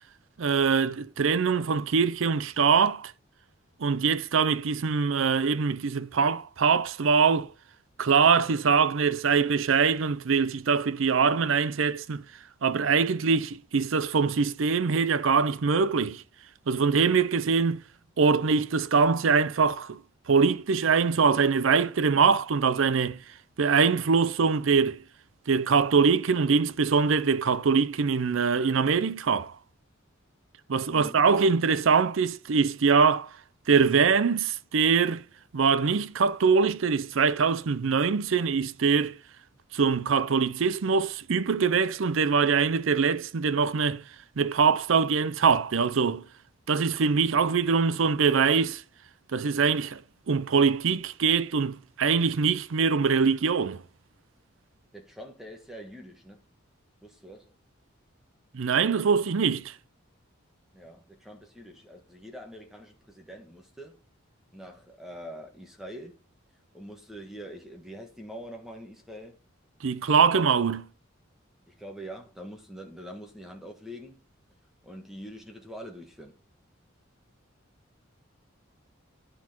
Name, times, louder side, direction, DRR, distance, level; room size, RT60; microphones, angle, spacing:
voice 1, 0.4-3.1 3.8-7.5 8.0-12.2 12.6-16.2 16.7-17.8 18.2-20.0 20.3-23.2 23.6-25.0 25.5-29.6 30.7-33.3 33.7-35.2 35.5-39.2 39.7-44.0 44.4-46.2 46.7-48.8 49.3-50.0 50.3-53.8 58.5-59.7 69.8-70.8, right 5 dB, 70° right, 0.5 m, -23 dB
voice 2, 54.9-56.4 57.0-57.5 60.7-64.0 64.5-66.2 66.7-69.4 71.7-74.2 74.8-76.4, equal, ahead, 1.6 m, -44 dB
9.8 x 5.9 x 4.4 m
head